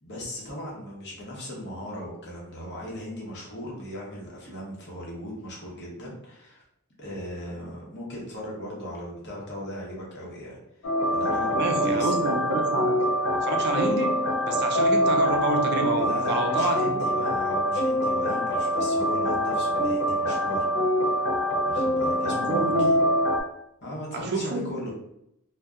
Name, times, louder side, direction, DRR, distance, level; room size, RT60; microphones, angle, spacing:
voice 1, 0.0-6.6 7.0-10.6 11.1-12.3 16.0-20.7 21.6-22.9 23.8-24.9, equal, 55° left, 0.9 m, -37 dB
sound 1, 10.8-23.4, equal, 75° left, 0.5 m, -24 dB
voice 2, 11.5-13.0 13.3-17.1 22.2-23.1 24.1-24.7, right 2 dB, 50° right, 0.4 m, -28 dB
2.7 x 2.1 x 2.3 m
head